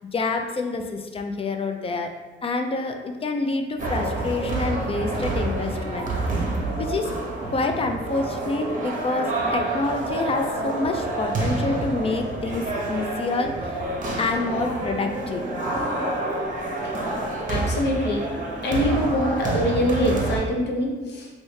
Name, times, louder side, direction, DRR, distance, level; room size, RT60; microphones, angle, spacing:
voice 1, 0.1-2.1 2.4-6.1 6.8-7.2 7.5-13.8 14.2-15.4, left 3 dB, 30° left, 4 dB, 0.4 m, -27 dB
sound 1, 3.8-20.4, right 2 dB, 40° right, 0.7 m, -28 dB
voice 2, 17.5-18.2 18.6-21.3, equal, 60° left, -1 dB, 0.8 m, -24 dB
3.1 x 2.7 x 3.2 m, 1.2 s
cardioid pair, 90°, 20 cm